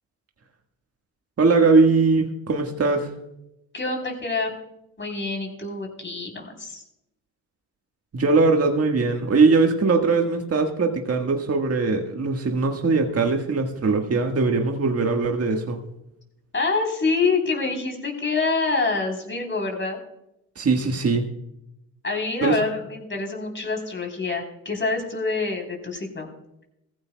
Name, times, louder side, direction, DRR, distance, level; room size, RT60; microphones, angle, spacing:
voice 1, 1.4-3.1 8.1-15.8 20.6-21.3 22.4-22.6, right 4 dB, 35° right, 3 dB, 1.6 m, -21 dB
voice 2, 3.7-4.5 5.0-6.8 16.5-20.0 22.0-26.3, left 3 dB, 30° left, 2 dB, 3.8 m, -26 dB
17.5 x 15.0 x 2.3 m, 0.85 s
supercardioid pair, 65°, 41 cm